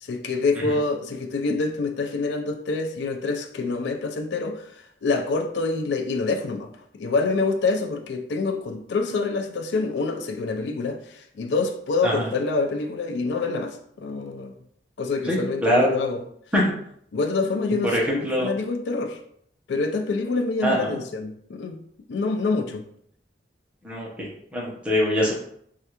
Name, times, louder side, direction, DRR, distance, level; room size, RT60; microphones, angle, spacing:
voice 1, 0.0-14.6 15.0-16.2 17.1-19.2 19.7-21.8 22.1-22.8, left 3 dB, 75° left, 0.4 m, -26 dB
voice 2, 15.3-15.9 16.5-16.6 17.8-18.5 20.6-21.0 23.8-25.4, equal, 5° right, 0.7 m, -23 dB
3.2 x 2.4 x 2.9 m
head